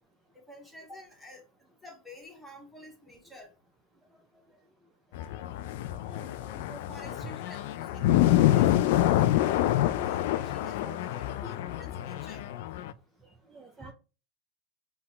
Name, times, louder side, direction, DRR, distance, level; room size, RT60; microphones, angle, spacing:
voice 1, 0.5-1.4 1.8-3.5 6.7-7.6 7.9-12.4, left 1 dB, 5° left, 0 dB, 1.5 m, -50 dB
sound 1, 5.1-12.9, left 14 dB, 60° left, 0.3 m, -27 dB
voice 2, 6.1-7.4 9.0-10.1 10.4-11.0 11.4-11.6 12.0-12.1 13.5-13.9, right 1 dB, 15° right, 1 dB, 0.7 m, -48 dB
5.5 x 2.2 x 3.8 m, 0.33 s
hypercardioid pair, 95°, 0 cm